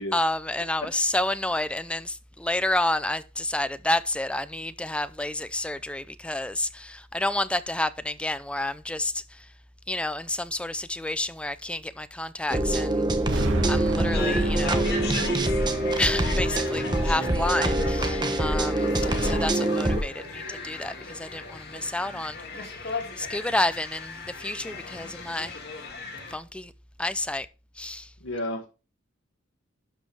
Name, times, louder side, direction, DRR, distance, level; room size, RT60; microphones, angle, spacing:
voice 1, 0.0-9.5 9.9-14.9 15.9-25.6 26.3-26.7 27.0-27.5 27.8-28.1, left 1 dB, 5° left, 0.5 m, -30 dB
sound 1, 12.5-20.0, right 1 dB, 25° right, 1.0 m, -25 dB
sound 2, 13.3-17.4, right 1 dB, 75° right, 1.8 m, -32 dB
sound 3, 14.0-26.4, left 3 dB, 55° left, 2.3 m, -36 dB
voice 2, 28.2-28.7, left 1 dB, 85° left, 1.6 m, -33 dB
11.5 x 5.4 x 3.4 m
head